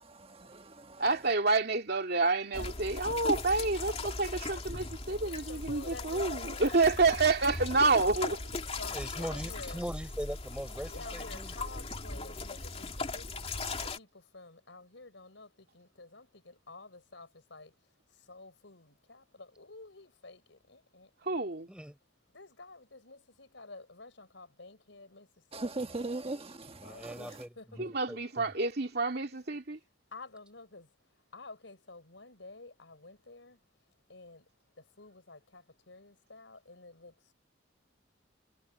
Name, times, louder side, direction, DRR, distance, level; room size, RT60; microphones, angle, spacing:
voice 1, 0.0-1.3 25.5-27.4, right 2 dB, 30° right, 1.4 m, -40 dB
voice 2, 1.0-8.4 21.2-21.7 27.8-29.8, right 3 dB, 55° right, 2.6 m, -28 dB
sound 1, 2.5-14.0, left 3 dB, 30° left, 2.8 m, -38 dB
voice 3, 5.1-6.8 7.7-8.3 8.8-9.8 10.8-12.9 13.1-13.5 13.8-17.7 18.3-21.4 22.3-25.3 25.7-26.0 26.8-28.1 29.3-29.4 30.1-30.9 31.3-33.6 34.1-34.4 35.0-37.1, left 3 dB, 75° left, 4.6 m, -51 dB
voice 4, 8.9-11.5 21.7-22.0 26.8-28.5, equal, 5° right, 5.0 m, -41 dB
head